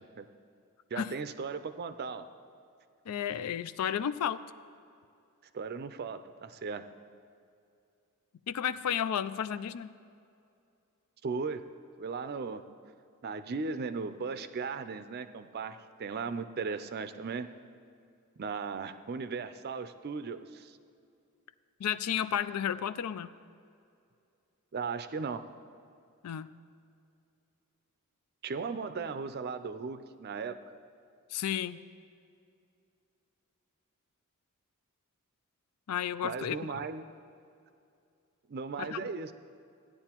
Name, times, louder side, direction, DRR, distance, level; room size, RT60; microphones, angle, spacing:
voice 1, 0.9-2.3 5.5-6.9 11.2-11.7 12.0-12.6 13.2-17.5 18.4-20.8 24.7-25.5 28.4-30.6 36.2-37.1 38.5-39.3, right 5 dB, 45° right, 11 dB, 0.4 m, -37 dB
voice 2, 3.1-4.4 8.5-9.9 21.8-23.3 26.2-26.5 31.3-31.8 35.9-36.8 38.8-39.1, left 9 dB, 90° left, 15 dB, 0.4 m, -32 dB
16.0 x 10.0 x 2.9 m, 2.5 s
head